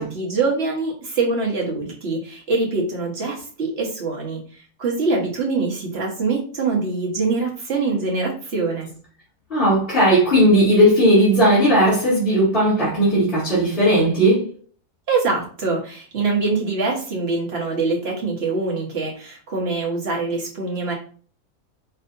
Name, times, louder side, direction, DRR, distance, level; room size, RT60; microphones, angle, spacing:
voice 1, 0.0-8.9 15.1-20.9, right 3 dB, 45° right, 1.5 m, -24 dB
voice 2, 9.5-14.5, equal, 40° left, 2.0 m, -16 dB
5.5 x 3.2 x 2.7 m
omnidirectional pair, 1.6 m